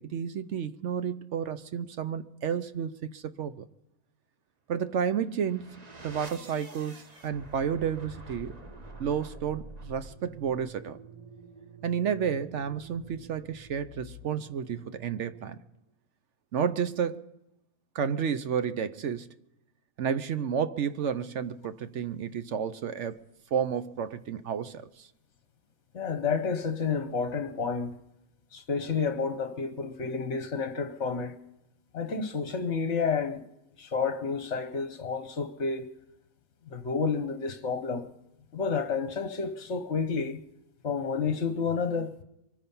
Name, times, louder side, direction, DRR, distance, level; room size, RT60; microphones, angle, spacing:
voice 1, 0.0-3.7 4.7-8.6 9.0-11.0 11.8-15.6 16.5-17.2 17.9-19.3 20.0-23.2 23.5-25.1, right 7 dB, 60° right, 0.9 m, -31 dB
sound 1, 5.1-15.8, right 2 dB, 30° right, 1.3 m, -47 dB
voice 2, 25.9-28.0 28.5-31.4 31.9-33.4 33.8-35.9 36.7-38.1 38.5-40.4 40.8-42.2, left 5 dB, 55° left, 1.2 m, -30 dB
24.0 x 10.0 x 5.4 m
omnidirectional pair, 1.6 m